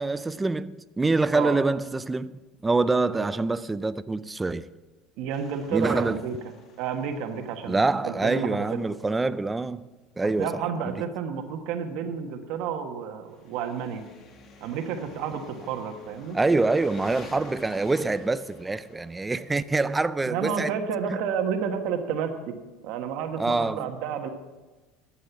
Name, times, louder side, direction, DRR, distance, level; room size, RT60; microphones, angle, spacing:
voice 1, 0.0-4.7 5.7-6.2 7.7-9.9 10.2-11.0 16.3-20.7 21.1-21.2 23.4-23.9, right 3 dB, 15° right, 0.4 m, -25 dB
voice 2, 5.2-6.3 6.8-8.6 10.4-14.0 14.6-16.4 20.2-22.5 22.8-24.3, right 7 dB, 65° right, 1.5 m, -30 dB
sound 1, 5.3-9.2 13.3-21.0, left 3 dB, 50° left, 1.8 m, -49 dB
11.5 x 7.8 x 7.1 m
supercardioid pair, 120°, 0 cm